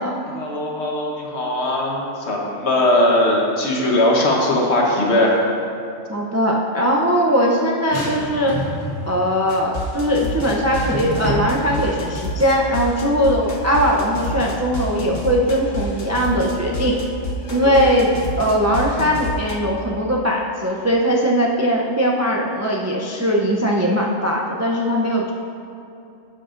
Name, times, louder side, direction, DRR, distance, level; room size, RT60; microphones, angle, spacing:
voice 1, 0.3-5.4 17.6-17.7, left 1 dB, 60° left, -2 dB, 1.4 m, -19 dB
voice 2, 6.1-8.6 9.1-17.0 17.5-25.3, equal, 25° right, -2 dB, 0.3 m, -20 dB
sound 1, 7.9-9.1 10.4-11.4, right 1 dB, 20° left, 1.8 m, -27 dB
sound 2, 9.5-19.5, right 1 dB, 45° left, 0.9 m, -28 dB
12.0 x 7.3 x 2.5 m, 2.7 s
omnidirectional pair, 1.3 m